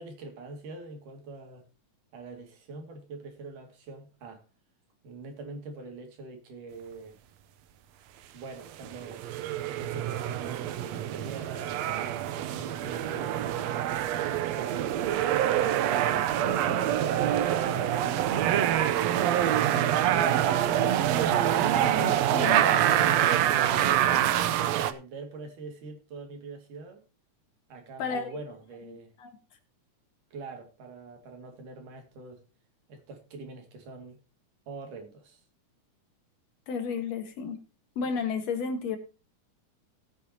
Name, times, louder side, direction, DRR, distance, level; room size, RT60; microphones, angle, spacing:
voice 1, 0.0-1.6 2.1-4.4 5.0-7.2 8.3-9.4 9.7-13.6 14.1-15.0 20.9-23.2 24.8-27.0 27.7-29.1 30.3-32.4 32.9-34.2 34.7-35.4, right 3 dB, 85° right, 5 dB, 3.9 m, -44 dB
sound 1, 8.8-24.9, right 11 dB, 70° right, 1.8 m, -26 dB
voice 2, 21.9-22.6 28.0-28.3 29.2-29.3 36.7-37.6 38.0-39.0, left 5 dB, 60° left, 6 dB, 2.6 m, -32 dB
18.0 x 8.9 x 2.8 m, 0.32 s
omnidirectional pair, 3.5 m